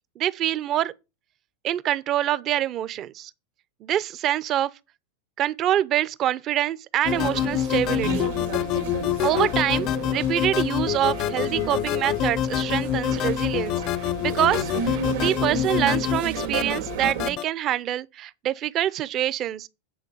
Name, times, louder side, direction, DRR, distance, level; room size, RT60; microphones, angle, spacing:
voice 1, 0.2-0.9 1.6-3.3 3.8-4.7 5.4-8.3 9.2-19.7, right 12 dB, 40° right, 0.6 m, -25 dB
sound 1, 7.0-17.4, left 11 dB, 45° left, 0.6 m, -26 dB
sound 2, 7.1-17.3, right 7 dB, 80° right, 2.3 m, -33 dB
8.7 x 3.9 x 6.8 m
hypercardioid pair, 120°, 0 cm